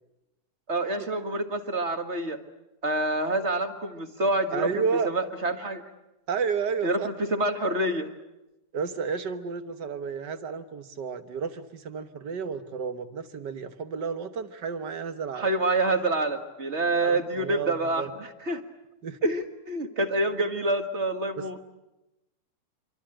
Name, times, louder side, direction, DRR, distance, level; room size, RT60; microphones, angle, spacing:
voice 1, 0.7-2.4 2.8-5.8 6.8-8.1 15.3-18.6 19.2-21.6, right 2 dB, 35° right, 7 dB, 1.1 m, -27 dB
voice 2, 4.5-5.1 6.3-7.1 8.7-15.5 17.0-18.1 19.0-19.2 21.4-21.6, right 5 dB, 75° right, 9 dB, 0.9 m, -31 dB
27.0 x 24.0 x 8.9 m, 0.97 s
omnidirectional pair, 3.7 m